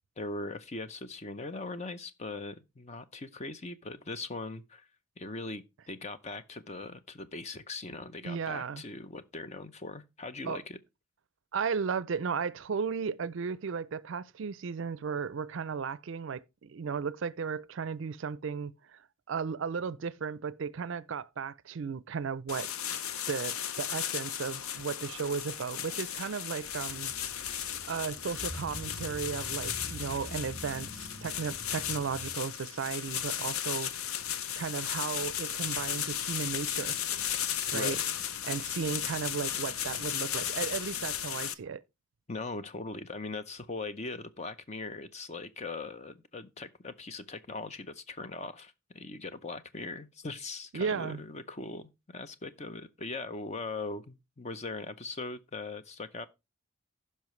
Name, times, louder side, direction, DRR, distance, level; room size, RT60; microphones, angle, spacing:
voice 1, 0.2-4.9 5.2-10.8 37.7-38.0 42.3-56.3, left 3 dB, 30° left, 0.6 m, -40 dB
voice 2, 8.2-8.8 10.5-10.6 11.5-19.0 19.3-22.7 23.3-27.1 27.9-33.9 34.6-37.0 37.7-38.0 38.4-41.8 50.7-51.2, right 6 dB, 60° right, 0.4 m, -35 dB
sound 1, 22.5-41.5, left 9 dB, 80° left, 0.7 m, -35 dB
sound 2, 26.7-32.3, equal, ahead, 4.2 m, -46 dB
15.5 x 5.6 x 3.1 m
head